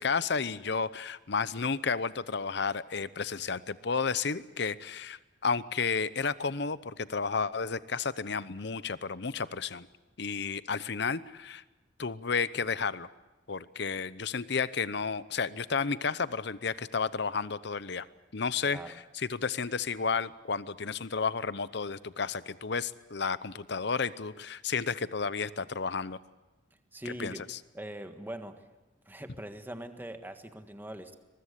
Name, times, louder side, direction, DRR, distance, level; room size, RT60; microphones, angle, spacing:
voice 1, 0.0-9.9 10.2-11.6 12.0-13.1 13.5-18.1 18.3-18.8 19.1-26.2 27.2-27.6, left 5 dB, 60° left, 16 dB, 0.8 m, -32 dB
voice 2, 18.6-19.0 26.9-27.5 27.7-28.6 29.0-31.2, right 1 dB, 10° right, 7 dB, 1.6 m, -42 dB
23.0 x 21.0 x 8.2 m, 1.1 s
head